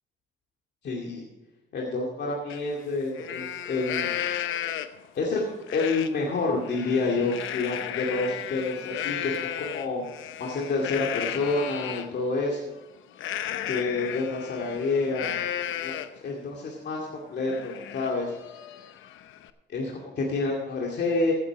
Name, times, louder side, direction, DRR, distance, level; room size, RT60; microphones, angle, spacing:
voice 1, 0.8-1.2 1.7-4.1 5.2-10.0 10.4-12.8 13.7-15.4 15.8-16.0 16.2-18.3 19.7-21.3, left 3 dB, 60° left, -1 dB, 2.3 m, -28 dB
Livestock farm animals working animals, 2.5-2.6 3.0-5.1 5.7-6.1 6.5-12.1 13.2-16.3 16.7-16.8 17.1-19.5, left 11 dB, 80° left, 0.8 m, -34 dB
15.5 x 8.6 x 4.9 m, 1.1 s
cardioid pair, 90°, 20 cm